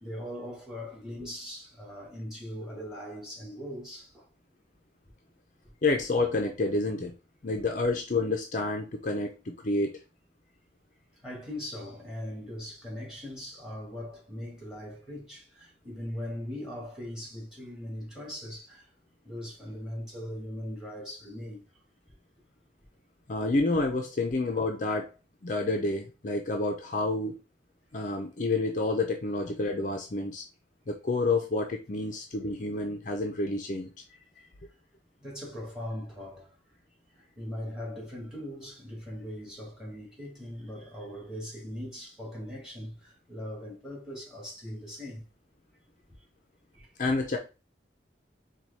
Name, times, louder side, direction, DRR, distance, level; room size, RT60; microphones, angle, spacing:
voice 1, 0.0-4.3 11.2-18.9 19.2-21.6 29.4-29.6 34.1-34.5 35.2-36.5 37.2-45.2 46.7-46.9, equal, 5° right, 2.0 m, -40 dB
voice 2, 5.8-7.1 7.4-10.0 23.3-25.1 25.4-27.4 27.9-30.4 30.9-33.9 47.0-47.4, left 2 dB, 45° left, 0.5 m, -29 dB
4.5 x 2.3 x 4.1 m
head